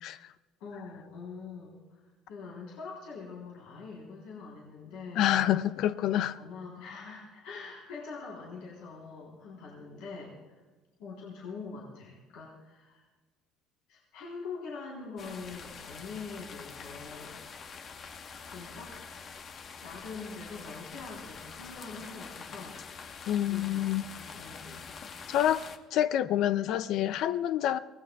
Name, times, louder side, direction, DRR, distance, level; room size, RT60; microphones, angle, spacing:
voice 1, 0.6-2.0 2.3-5.3 6.4-10.6 11.0-13.1 13.9-17.4 18.4-18.9 19.8-22.8 23.5-24.9, left 4 dB, 85° left, 3.7 m, -44 dB
voice 2, 5.2-6.4 23.3-24.0 25.3-25.6 25.9-27.8, left 11 dB, 65° left, 0.4 m, -27 dB
sound 1, 15.2-25.8, left 5 dB, 45° left, 1.2 m, -45 dB
24.0 x 18.0 x 2.3 m
cardioid pair, 105°, 0 cm